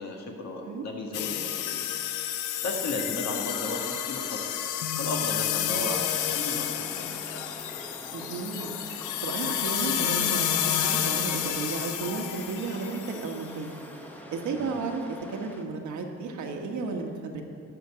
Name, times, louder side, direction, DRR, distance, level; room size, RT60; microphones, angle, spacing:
voice 1, 0.0-1.8 2.6-4.4 5.0-7.1 14.6-14.8, left 2 dB, 60° left, 1 dB, 1.9 m, -35 dB
sound 1, 1.1-13.4, left 10 dB, 85° left, 0.7 m, -30 dB
sound 2, 6.1-15.6, equal, 5° left, 1.2 m, -44 dB
voice 2, 8.1-8.7 9.2-13.8 14.3-17.4, right 4 dB, 75° right, 3 dB, 1.4 m, -33 dB
12.0 x 5.1 x 8.5 m, 2.3 s
cardioid pair, 90°, 30 cm